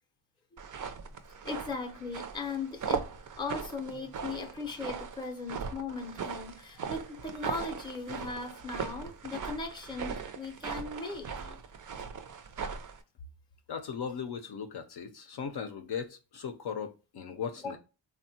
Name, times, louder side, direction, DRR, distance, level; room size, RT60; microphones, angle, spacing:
sound 1, 0.6-13.0, right 6 dB, 45° right, 0.4 m, -39 dB
voice 1, 1.4-11.6 17.6-17.8, left 3 dB, 10° left, 0.5 m, -38 dB
voice 2, 13.7-17.8, left 7 dB, 60° left, 0.5 m, -38 dB
3.4 x 2.1 x 2.6 m
wide cardioid pair, 120°, 46 cm